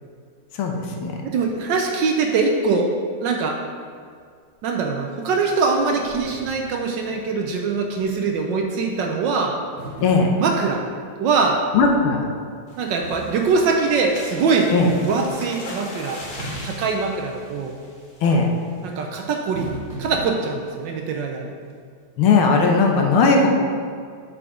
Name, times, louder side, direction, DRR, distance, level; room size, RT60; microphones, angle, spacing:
voice 1, 0.5-1.2 10.0-10.3 11.7-12.2 14.7-14.9 18.2-18.5 22.2-23.5, left 4 dB, 75° left, 2 dB, 1.7 m, -17 dB
voice 2, 1.2-2.9 3.2-3.6 4.6-9.5 10.4-10.8 11.2-11.6 12.8-14.7 15.0-16.2 16.6-17.7 18.8-19.7 20.0-21.5, right 4 dB, 70° right, 2 dB, 1.2 m, -22 dB
sound 1, 5.2-5.3 5.6-7.7 8.0-8.1 9.8-11.1 13.0-14.4 16.4-17.9 19.5-20.3, right 2 dB, 50° right, 0.9 m, -38 dB
sound 2, 12.7-18.4 18.9-19.1 19.5-19.6 19.9-20.2, left 1 dB, 40° left, 0.8 m, -40 dB
6.9 x 4.9 x 5.0 m, 2.1 s
omnidirectional pair, 2.3 m